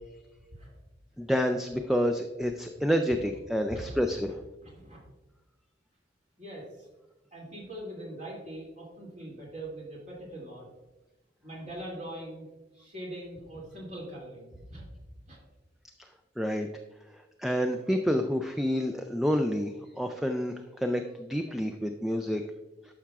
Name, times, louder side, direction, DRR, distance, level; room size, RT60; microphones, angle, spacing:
voice 1, 1.2-4.3 16.4-16.7 17.4-22.4, equal, ahead, 5 dB, 0.3 m, -28 dB
voice 2, 3.7-4.2 4.6-5.0 6.4-6.9 7.3-10.7 11.4-14.9 15.2-15.4, right 1 dB, 40° right, -3 dB, 2.5 m, -42 dB
11.5 x 5.7 x 2.4 m, 1.1 s
head